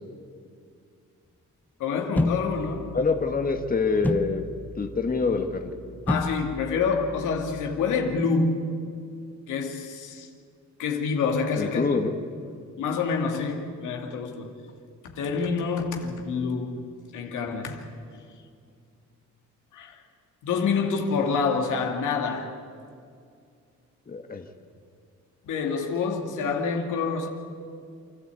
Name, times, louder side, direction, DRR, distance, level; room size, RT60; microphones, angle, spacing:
voice 1, 1.8-2.9 6.1-8.7 9.5-10.3 10.8-11.9 12.8-14.5 15.0-16.8 17.1-17.9 19.7-20.0 20.4-22.6 25.4-27.3, left 5 dB, 80° left, 2.4 m, -27 dB
sound 1, 2.2-8.2, left 2 dB, 5° left, 0.9 m, -33 dB
voice 2, 2.9-4.4 4.7-5.7 11.5-12.1 24.1-24.5, left 4 dB, 30° left, 1.6 m, -25 dB
28.0 x 12.5 x 8.4 m
cardioid pair, 90°, 30 cm